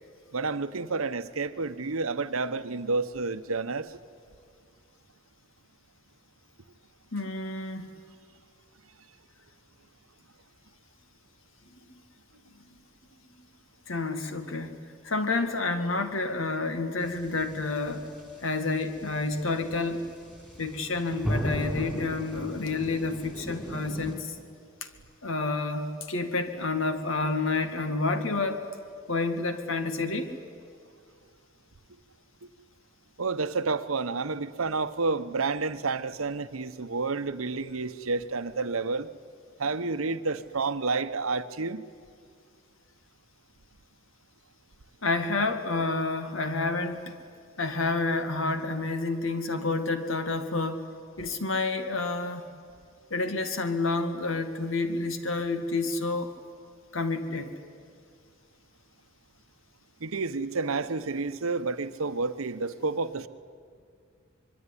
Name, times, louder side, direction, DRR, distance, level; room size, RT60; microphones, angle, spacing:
voice 1, 0.3-4.0 32.4-32.5 33.2-39.1 39.6-41.8 60.0-63.3, right 3 dB, 85° right, 13 dB, 1.0 m, -30 dB
voice 2, 7.1-7.9 11.9-12.0 13.9-14.8 15.0-18.1 18.4-20.1 20.6-24.4 24.8-24.9 25.2-28.7 29.1-30.4 45.0-47.2 47.6-50.9 51.2-52.5 53.1-56.4 56.9-57.5, left 3 dB, 70° left, 8 dB, 2.1 m, -29 dB
sound 1, 17.0-24.2, equal, 5° left, 4.1 m, -37 dB
25.5 x 22.5 x 9.9 m, 2.2 s
head